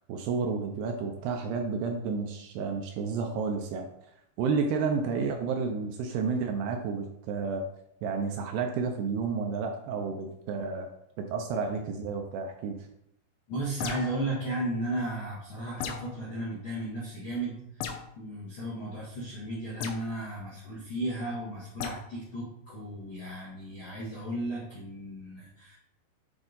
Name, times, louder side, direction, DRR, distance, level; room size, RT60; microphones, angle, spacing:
voice 1, 0.1-3.9 4.4-7.6 8.0-10.9 11.2-12.8, right 5 dB, 80° right, 4 dB, 2.5 m, -31 dB
voice 2, 13.5-25.7, right 1 dB, 65° left, -8 dB, 1.2 m, -35 dB
sound 1, 13.8-14.3 15.8-16.2 17.8-18.1 19.8-20.0 21.8-22.0, left 7 dB, 90° left, 3.1 m, -35 dB
8.8 x 3.6 x 4.0 m, 0.77 s
omnidirectional pair, 5.1 m